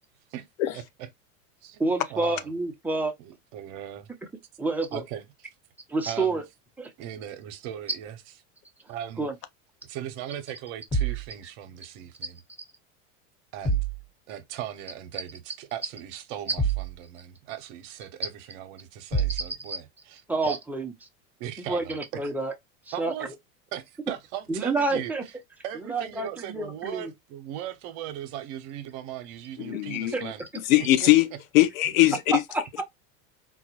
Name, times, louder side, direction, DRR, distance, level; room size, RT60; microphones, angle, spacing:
voice 1, 0.7-1.1 1.6-1.8 2.1-2.5 3.2-4.1 4.9-5.2 6.1-6.4 7.0-8.2 8.9-9.3 9.9-12.4 13.5-13.8 14.3-20.6 21.4-22.2 22.9-23.3 23.7-25.1 25.6-30.4 30.8-31.1 31.8-31.9, right 11 dB, 60° right, 0.9 m, -38 dB
voice 2, 1.8-3.1 4.6-5.0 5.9-6.4 6.8-6.9 9.2-9.3 19.6-19.8 20.3-20.9 21.7-22.5 23.0-23.1 24.5-25.2 25.8-27.1 30.1-30.2 32.5-32.8, right 3 dB, 5° right, 0.6 m, -28 dB
sound 1, 10.9-11.3 13.6-14.0 16.6-16.9 19.1-19.5, right 4 dB, 15° left, 1.3 m, -26 dB
voice 3, 29.6-30.3 30.7-31.3 31.5-32.4, left 16 dB, 75° left, 0.7 m, -21 dB
3.9 x 2.3 x 2.9 m
supercardioid pair, 115°, 40 cm